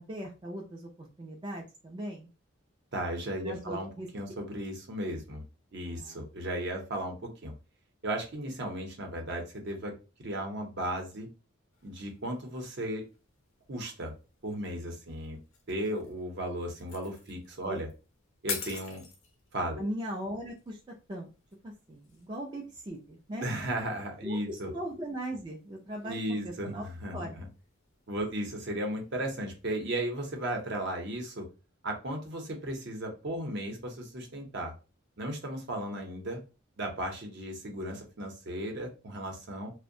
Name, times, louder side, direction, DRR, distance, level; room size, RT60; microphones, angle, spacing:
voice 1, 0.0-2.3 3.4-4.1 5.8-6.3 17.7-17.8 19.8-20.8 21.1-21.3 21.6-23.5 24.2-27.4, right 1 dB, 25° right, -1 dB, 0.3 m, -39 dB
voice 2, 2.9-3.9 4.1-5.4 5.7-7.5 8.0-9.9 10.2-11.3 11.8-13.0 13.7-14.1 14.4-15.4 15.7-17.9 18.4-19.0 19.5-19.8 23.4-24.7 26.0-27.5 28.1-31.5 31.8-34.7 35.2-36.4 36.8-39.7, right 1 dB, 55° right, 2 dB, 0.7 m, -35 dB
sound 1, 11.7-31.1, left 5 dB, 75° left, 0.7 m, -49 dB
2.6 x 2.1 x 2.6 m, 0.32 s
head